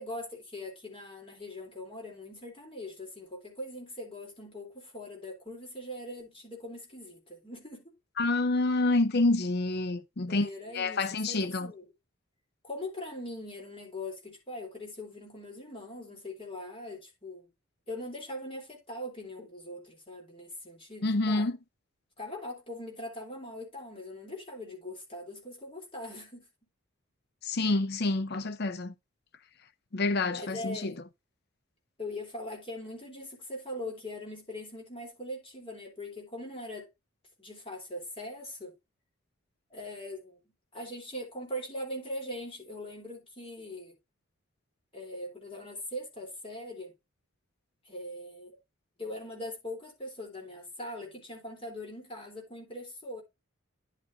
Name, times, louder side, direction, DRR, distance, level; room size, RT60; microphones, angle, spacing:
voice 1, 0.0-7.9 10.2-11.9 12.6-17.5 17.9-21.5 22.2-26.5 30.3-31.0 32.0-36.9 37.4-38.8 39.7-40.4 40.7-44.0 44.9-46.9 47.9-48.6 49.0-53.2, left 1 dB, 25° left, 3.6 m, -41 dB
voice 2, 8.2-11.7 21.0-21.6 27.4-28.9 29.9-30.9, left 2 dB, 50° left, 0.6 m, -28 dB
11.0 x 6.2 x 2.7 m
head